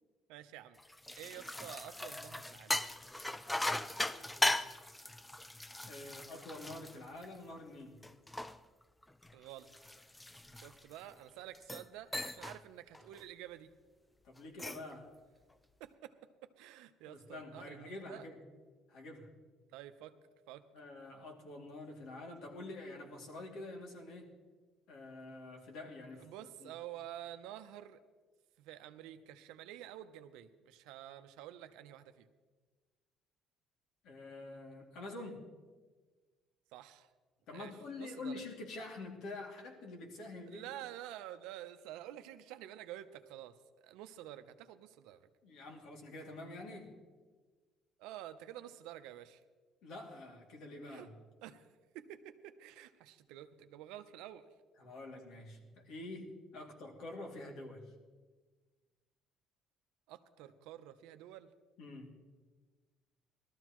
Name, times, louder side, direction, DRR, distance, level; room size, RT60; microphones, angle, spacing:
voice 1, 0.3-0.8 1.2-2.9 9.3-9.7 10.5-13.7 15.8-16.1 16.6-18.3 19.7-20.2 20.5-20.7 26.2-28.0 28.6-32.3 36.7-37.1 37.5-38.4 40.5-45.3 48.0-49.4 50.9-51.1 51.4-51.7 51.9-54.5 60.1-61.5, right 12 dB, 85° right, 9 dB, 0.7 m, -49 dB
sound 1, 0.8-7.6 8.0-11.0 11.5-11.9 12.1-12.6 12.9-13.2 14.4-14.9, left 1 dB, 10° left, 0.5 m, -38 dB
voice 2, 5.9-8.0 14.2-15.1 17.1-18.4 18.9-19.3 20.7-24.3 24.9-26.7 34.0-35.5 37.5-40.7 45.4-47.0 49.8-51.1 54.8-57.9 61.8-62.2, left 2 dB, 70° left, 0 dB, 2.6 m, -47 dB
19.0 x 13.5 x 3.1 m, 1.4 s
cardioid pair, 100°, 0 cm